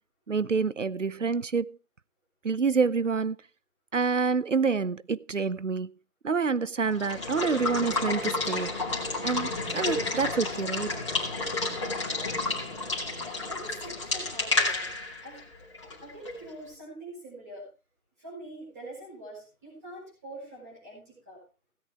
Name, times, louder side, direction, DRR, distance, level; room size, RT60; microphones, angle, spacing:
voice 1, 0.3-1.7 2.4-3.4 3.9-5.9 6.2-8.7 9.2-10.9, right 5 dB, 60° right, 0.7 m, -27 dB
Water / Water tap faucet / Liquid, 6.9-16.5, left 3 dB, 20° left, 2.4 m, -31 dB
voice 2, 12.0-12.4 13.5-14.9 15.2-15.4 16.0-17.7 18.2-21.4, right 1 dB, 10° right, 5.2 m, -44 dB
16.5 x 8.7 x 4.6 m
figure-of-eight pair, 180°, 43 cm